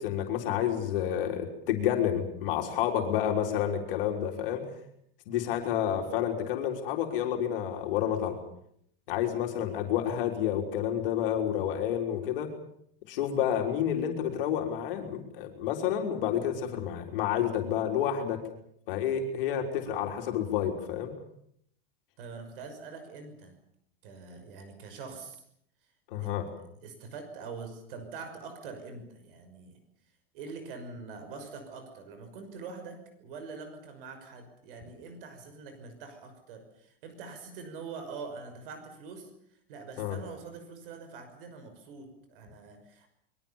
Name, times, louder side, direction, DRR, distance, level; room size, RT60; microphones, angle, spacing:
voice 1, 0.0-4.7 5.3-8.4 9.1-12.5 13.1-18.4 18.9-21.1 26.1-26.5 40.0-40.2, left 9 dB, 65° left, 2 dB, 4.0 m, -29 dB
voice 2, 22.2-23.5 24.0-25.4 26.2-26.3 26.8-29.8 30.3-43.1, right 4 dB, 70° right, 8 dB, 6.0 m, -44 dB
25.5 x 22.5 x 7.3 m, 0.69 s
supercardioid pair, 155°, 29 cm